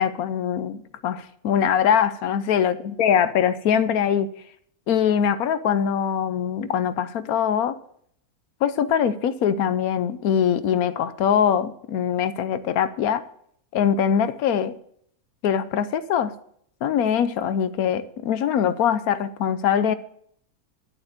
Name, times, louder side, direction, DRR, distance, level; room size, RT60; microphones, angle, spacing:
voice 1, 0.0-4.3 4.9-7.8 8.6-13.2 13.7-14.7 15.4-16.3 16.8-19.9, left 8 dB, 75° left, 1.1 m, -22 dB
11.0 x 7.0 x 6.5 m
omnidirectional pair, 1.6 m